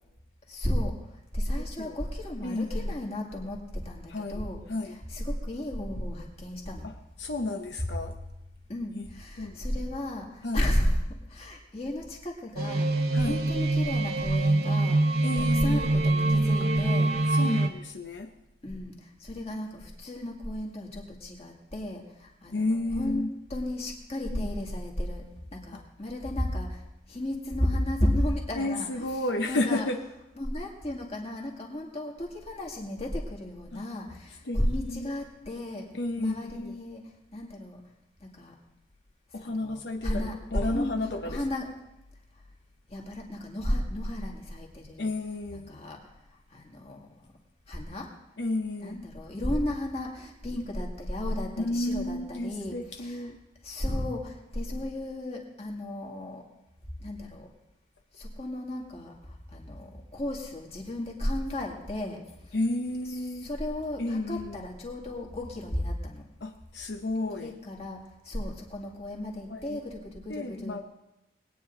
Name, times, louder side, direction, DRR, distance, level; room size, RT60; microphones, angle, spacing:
voice 1, 0.5-1.0 1.3-6.9 7.8-8.0 8.7-15.0 15.4-17.5 18.6-23.2 23.5-25.2 25.5-26.8 27.1-29.2 29.5-29.9 30.4-35.9 36.2-37.8 38.3-38.5 39.4-41.7 42.9-45.1 45.7-46.0 46.5-47.1 47.7-48.1 48.8-53.3 53.6-56.4 57.0-57.5 58.2-59.2 59.5-62.2 63.4-66.2 67.3-70.8, left 1 dB, 35° left, 0 dB, 2.1 m, -33 dB
voice 2, 2.4-2.9 4.1-5.0 6.8-6.9 7.2-8.2 8.9-9.1 9.4-9.7 10.4-10.6 13.1-13.4 15.2-15.9 16.6-16.7 17.3-18.3 22.5-23.3 24.3-24.5 28.5-30.0 33.7-33.8 34.5-35.1 35.9-36.8 39.3-40.2 40.5-41.4 45.0-45.7 48.4-49.0 51.6-53.4 62.5-63.5 64.0-64.6 66.4-67.5 69.5-69.8 70.3-70.8, left 2 dB, 80° left, 4 dB, 0.8 m, -32 dB
sound 1, 12.6-17.7, right 2 dB, 55° right, 0.9 m, -24 dB
20.5 x 9.3 x 3.8 m, 0.91 s
head